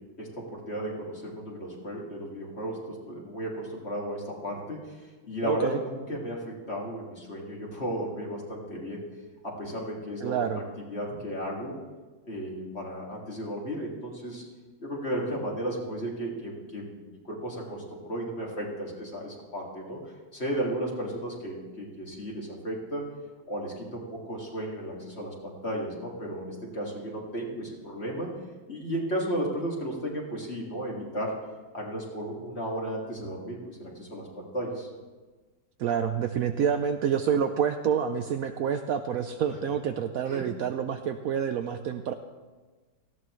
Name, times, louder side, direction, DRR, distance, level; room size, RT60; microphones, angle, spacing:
voice 1, 0.2-5.0 5.3-9.0 9.4-11.8 12.3-14.4 14.8-17.0 17.3-20.0 20.3-23.0 23.5-28.3 28.7-31.3 31.7-34.9 40.3-40.5, right 1 dB, 35° left, -2 dB, 2.4 m, -34 dB
voice 2, 5.4-5.8 10.2-10.6 35.8-42.1, right 8 dB, 85° right, 7 dB, 0.7 m, -28 dB
18.0 x 14.0 x 3.2 m, 1.3 s
omnidirectional pair, 2.1 m